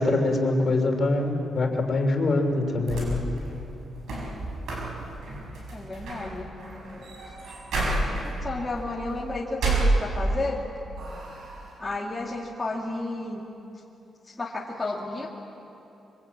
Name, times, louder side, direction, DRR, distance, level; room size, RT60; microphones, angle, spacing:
voice 1, 0.0-3.2, left 2 dB, 35° left, 3 dB, 3.1 m, -24 dB
sound 1, 2.8-10.6 11.0-11.8, right 2 dB, 70° right, 7.1 m, -30 dB
voice 2, 5.7-6.5 8.2-10.6 11.8-13.5 14.4-15.3, left 2 dB, 15° left, -4 dB, 2.0 m, -32 dB
26.5 x 24.5 x 8.6 m, 2.9 s
wide cardioid pair, 180°, 0 cm